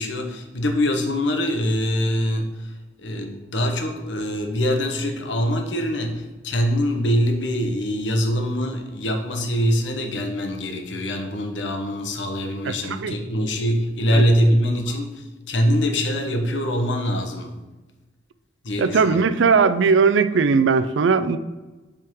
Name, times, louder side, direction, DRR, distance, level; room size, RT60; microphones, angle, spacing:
voice 1, 0.0-17.5 18.6-19.3, equal, 75° left, 4 dB, 1.0 m, -23 dB
voice 2, 12.6-13.1 14.1-14.2 18.8-21.4, right 5 dB, 85° right, 12 dB, 0.4 m, -19 dB
7.5 x 3.7 x 4.7 m, 1.2 s
head